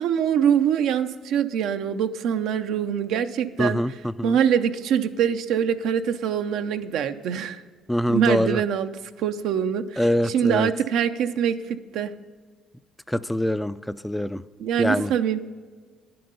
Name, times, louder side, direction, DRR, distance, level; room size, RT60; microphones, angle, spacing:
voice 1, 0.0-3.8 4.2-7.6 8.1-8.9 9.2-12.1 14.6-15.4, right 8 dB, 75° right, 9 dB, 0.5 m, -24 dB
voice 2, 3.6-4.4 7.9-8.6 10.0-10.7 13.1-14.4 14.8-15.1, left 1 dB, 5° left, 14 dB, 0.3 m, -24 dB
10.5 x 7.7 x 5.4 m, 1.5 s
supercardioid pair, 75°, 0 cm